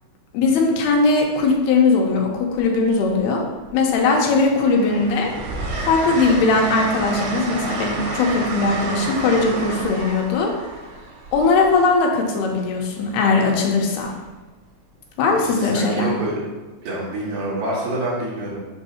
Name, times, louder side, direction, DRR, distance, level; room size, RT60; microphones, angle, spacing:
voice 1, 0.3-3.5 3.7-5.3 5.9-10.5 11.3-14.2 15.2-16.1, left 3 dB, 85° left, 1 dB, 2.9 m, -19 dB
Train, 1.0-1.2 2.5-3.2 3.6-12.4 14.0-14.2, right 2 dB, 85° right, 1.4 m, -30 dB
voice 2, 15.2-16.4 16.8-18.6, right 1 dB, 70° right, -5 dB, 3.0 m, -27 dB
7.0 x 2.7 x 5.6 m, 1.3 s
omnidirectional pair, 4.4 m